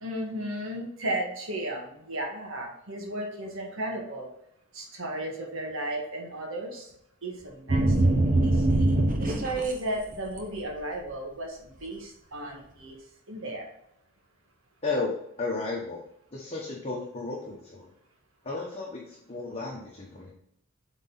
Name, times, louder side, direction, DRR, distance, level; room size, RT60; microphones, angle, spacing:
voice 1, 0.0-4.3 4.7-6.9 7.2-8.4 9.2-13.0 13.3-13.7, right 1 dB, 65° right, 1 dB, 1.8 m, -34 dB
sound 1, 7.7-9.7 10.1-10.6, right 2 dB, 40° right, 1.1 m, -23 dB
voice 2, 15.4-16.0 16.3-17.9 18.4-20.3, left 3 dB, 30° left, -4 dB, 1.2 m, -33 dB
8.1 x 4.1 x 4.2 m, 0.76 s
head